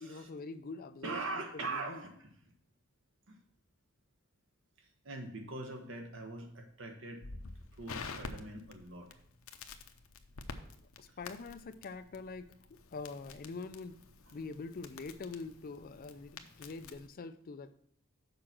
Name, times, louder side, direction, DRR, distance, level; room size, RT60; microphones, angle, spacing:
voice 1, 0.0-1.2 1.7-2.0 11.0-14.0 14.3-17.7, left 4 dB, 45° left, 12 dB, 0.4 m, -44 dB
voice 2, 1.0-2.5 3.3-3.4 4.8-7.2 7.8-9.2 11.1-11.2 14.3-14.4, right 3 dB, 65° right, 4 dB, 1.3 m, -42 dB
Crackle, 7.2-17.1, left 4 dB, 90° left, 0.7 m, -49 dB
6.7 x 4.9 x 5.9 m, 0.66 s
head